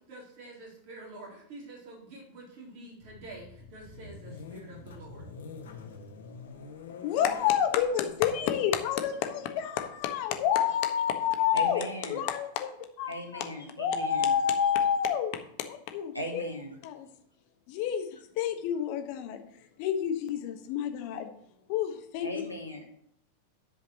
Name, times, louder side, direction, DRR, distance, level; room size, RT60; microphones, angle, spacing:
voice 1, 0.1-5.2, right 2 dB, 45° right, -2 dB, 3.9 m, -47 dB
sound 1, 3.0-10.7, left 4 dB, 65° left, 1.7 m, -47 dB
voice 2, 6.9-11.8 12.1-12.7 13.0-13.5 13.8-15.3 15.7-16.4 16.8-17.1 17.7-19.4 19.8-21.3 21.7-22.3, left 9 dB, 45° left, 6 dB, 1.4 m, -29 dB
voice 3, 11.5-12.2 13.1-14.3 16.1-16.8 22.2-22.8, equal, 90° right, 0 dB, 1.8 m, -38 dB
10.5 x 5.2 x 6.4 m, 0.69 s
figure-of-eight pair, 90°, 0 cm